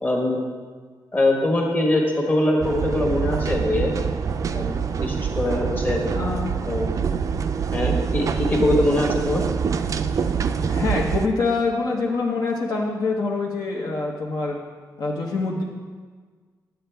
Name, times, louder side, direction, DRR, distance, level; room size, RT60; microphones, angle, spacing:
voice 1, 0.0-0.4 1.1-3.9 4.5-4.7 5.0-6.0 6.7-6.9 7.7-9.4, left 1 dB, 25° left, 0 dB, 1.4 m, -22 dB
sound 1, 2.6-11.3, right 6 dB, 50° right, 0.4 m, -25 dB
voice 2, 6.2-6.5 10.7-14.6 15.0-15.6, left 3 dB, 60° left, -2 dB, 0.9 m, -25 dB
9.3 x 8.0 x 3.4 m, 1.6 s
wide cardioid pair, 130°, 7 cm